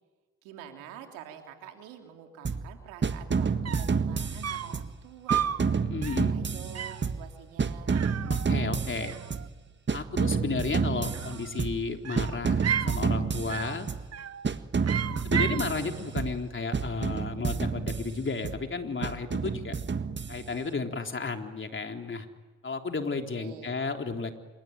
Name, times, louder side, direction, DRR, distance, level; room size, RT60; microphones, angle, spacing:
voice 1, 0.4-5.4 6.1-7.9 15.2-15.8 23.3-23.7, right 9 dB, 90° right, 4 dB, 3.3 m, -47 dB
sound 1, 2.4-2.7 3.0-5.0 5.3-7.3 7.6-9.5 9.9-11.9 12.2-14.1 14.4-16.4 16.7-18.6 19.0-20.7, right 5 dB, 35° right, 1.7 m, -30 dB
sound 2, 3.7-4.0 4.4-4.8 5.3-5.7 6.0-6.3 6.8-7.1 7.9-8.8 9.0-9.7 11.0-11.6 12.0-13.0 13.5-13.8 14.1-14.5 14.8-15.7, right 9 dB, 55° right, 1.2 m, -33 dB
voice 2, 5.8-6.3 8.3-9.2 9.9-13.9 15.2-19.7 20.3-22.3 22.6-24.4, left 4 dB, 40° left, 4 dB, 3.8 m, -33 dB
27.0 x 23.5 x 9.4 m, 1.3 s
hypercardioid pair, 45°, 30 cm